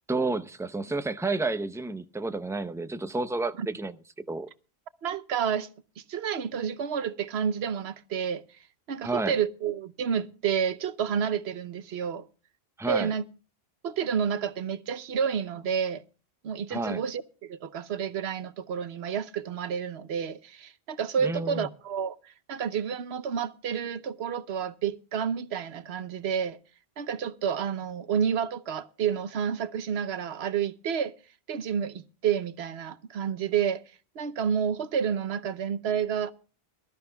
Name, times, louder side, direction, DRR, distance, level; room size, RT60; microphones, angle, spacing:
voice 1, 0.1-3.9 4.3-4.5 9.0-9.4 12.8-13.1 16.7-17.0 21.2-21.7, right 3 dB, 5° right, 0.5 m, -30 dB
voice 2, 5.0-5.7 6.0-8.4 8.9-12.3 12.9-13.2 13.8-16.0 16.4-26.6 27.0-31.1 31.5-33.8 34.1-36.3, right 7 dB, 80° right, 1.0 m, -30 dB
23.0 x 13.5 x 2.2 m
omnidirectional pair, 1.1 m